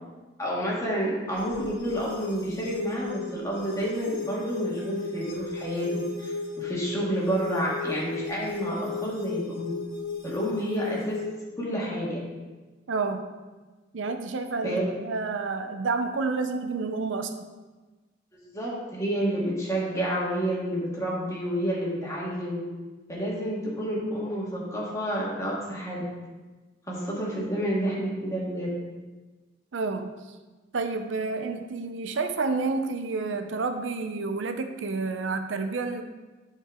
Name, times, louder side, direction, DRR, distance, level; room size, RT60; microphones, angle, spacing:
voice 1, 0.4-9.7 10.2-11.2 11.6-12.2 14.6-14.9 18.3-22.6 23.1-26.0 26.9-28.7, equal, 15° left, -5 dB, 1.9 m, -29 dB
sound 1, 1.3-11.3, left 4 dB, 80° left, 1.5 m, -36 dB
voice 2, 12.9-13.2 13.9-17.5 25.7-25.9 29.7-30.1 30.7-36.0, right 4 dB, 90° right, 7 dB, 0.6 m, -29 dB
11.0 x 4.5 x 3.7 m, 1.3 s
head